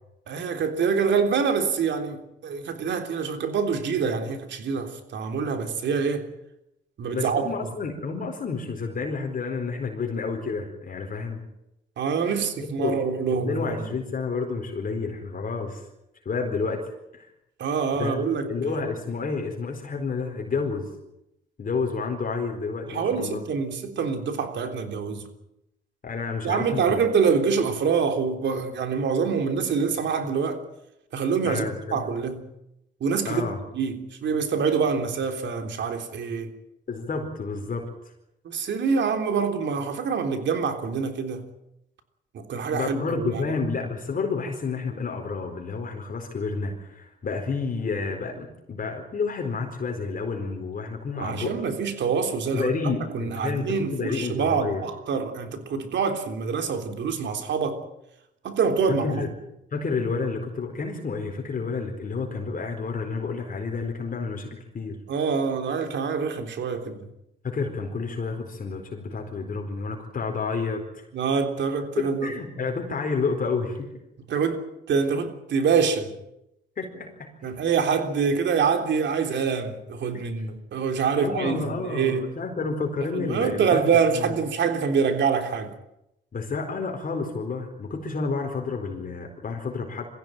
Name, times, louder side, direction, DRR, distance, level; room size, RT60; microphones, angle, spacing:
voice 1, 0.3-6.2 7.0-7.7 12.0-13.9 17.6-18.5 22.9-25.3 26.4-30.6 31.1-32.4 33.0-33.5 33.7-36.5 38.4-41.4 42.3-43.4 51.1-52.7 53.1-57.8 58.4-59.2 65.1-67.0 71.1-72.3 74.3-76.1 77.4-82.3 83.1-85.7, right 6 dB, 65° right, 3.5 m, -25 dB
voice 2, 7.1-11.4 12.6-13.0 13.3-15.8 16.2-16.9 17.1-17.3 18.0-20.9 21.6-23.4 26.0-27.0 31.4-32.0 33.2-33.6 36.9-37.9 42.7-51.5 52.5-54.9 58.9-59.3 59.7-65.0 67.4-71.0 72.0-73.9 76.8-77.3 80.1-80.2 81.1-83.9 84.1-84.3 86.3-90.0, left 4 dB, 45° left, 4.4 m, -30 dB
23.0 x 15.5 x 9.2 m
cardioid pair, 90°, 20 cm